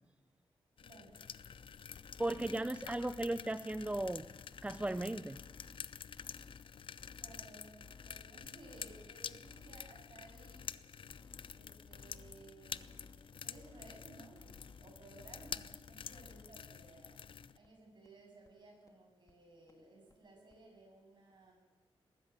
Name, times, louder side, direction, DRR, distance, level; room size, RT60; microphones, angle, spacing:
sound 1, 0.8-17.6, left 7 dB, 60° left, 0.6 m, -49 dB
voice 1, 0.8-1.2 2.4-3.2 7.1-10.7 11.5-14.4 14.8-17.2 17.5-21.5, right 2 dB, 50° right, 1 dB, 8.0 m, -58 dB
sound 2, 1.2-1.7 2.1-2.5 2.9-3.3 3.7-4.1 4.5-4.9 5.3-5.8 6.2-6.6 7.0-7.4 7.8-8.2 8.6-9.0 9.4-9.9 10.3-10.7 11.1-11.5 11.9-12.3 12.7-13.2 13.5-14.0 14.4-14.8 15.2-15.6 16.0-16.4 16.8-16.9 17.2-17.3 17.6-17.7 18.1-18.2 18.4-18.5 18.9-19.0 19.3-19.4 19.7-19.8 20.1-20.2 20.5-20.6, left 4 dB, 35° left, 2.2 m, -58 dB
voice 2, 2.2-4.2 4.6-5.4, right 1 dB, 15° right, 12 dB, 0.5 m, -36 dB
20.5 x 13.5 x 9.7 m, 1.3 s
wide cardioid pair, 100°, 10 cm